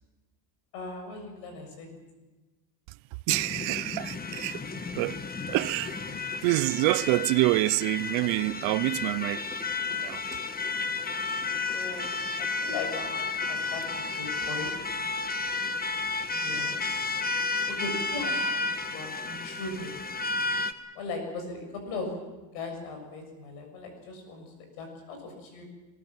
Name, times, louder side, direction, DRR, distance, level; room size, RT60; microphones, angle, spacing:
voice 1, 0.7-2.0 11.5-12.1 12.4-14.8 16.3-16.8 17.7-18.6 18.9-20.0 21.0-22.1 22.5-25.6, left 3 dB, 85° left, 7.0 m, -38 dB
sound 1, 3.3-20.7, left 3 dB, 20° left, 1.4 m, -32 dB
voice 2, 3.3-4.6 4.9-5.2 5.5-6.0 6.4-9.5 9.9-10.2, right 21 dB, 80° right, 0.7 m, -26 dB
22.0 x 20.5 x 7.6 m
cardioid pair, 100°, 47 cm